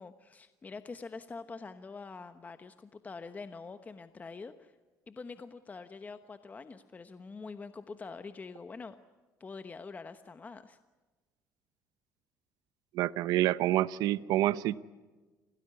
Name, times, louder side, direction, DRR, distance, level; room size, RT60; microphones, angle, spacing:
voice 1, 0.0-4.7 5.1-9.0 9.4-10.8, left 4 dB, 25° left, 1.1 m, -45 dB
voice 2, 12.9-14.8, right 14 dB, 75° right, 0.9 m, -27 dB
27.0 x 18.0 x 9.7 m
cardioid pair, 115°, 7 cm